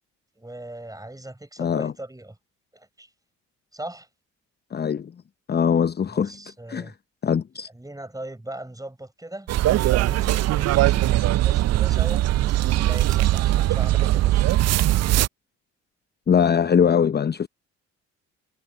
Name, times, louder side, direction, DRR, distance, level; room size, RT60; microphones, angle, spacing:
voice 1, 0.4-2.4 2.7-3.1 3.7-4.1 6.1-6.9 7.7-14.7, right 1 dB, 10° right, 6.0 m, -39 dB
voice 2, 1.6-1.9 4.7-5.1 5.5-6.3 6.7-6.9 7.2-7.7 16.3-17.5, left 7 dB, 25° left, 0.7 m, -21 dB
sound 1, 9.5-15.3, right 15 dB, 45° right, 0.5 m, -20 dB
hypercardioid pair, 50°, 36 cm